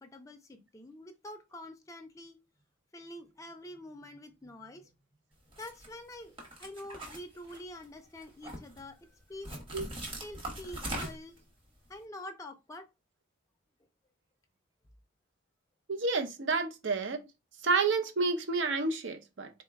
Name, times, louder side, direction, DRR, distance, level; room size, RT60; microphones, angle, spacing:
voice 1, 0.0-2.4 2.9-4.9 5.6-9.5 10.2-11.4 11.9-12.9, left 1 dB, 15° left, 0.4 m, -46 dB
sound 1, 5.5-5.9 6.4-7.8 8.2-8.8 9.4-11.4, right 1 dB, 25° right, 1.0 m, -40 dB
voice 2, 15.9-17.2 17.6-19.5, right 4 dB, 65° right, 0.6 m, -29 dB
3.8 x 2.2 x 3.4 m
head